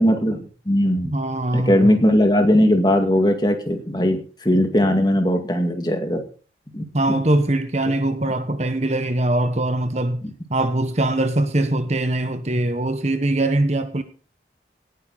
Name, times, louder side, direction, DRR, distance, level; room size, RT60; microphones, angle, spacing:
voice 1, 0.0-1.1 1.5-6.2 6.7-6.8, equal, 25° left, 2.2 m, -19 dB
voice 2, 1.0-2.0 6.9-10.2 10.5-14.0, right 1 dB, 40° right, 1.2 m, -22 dB
18.0 x 9.5 x 4.1 m
head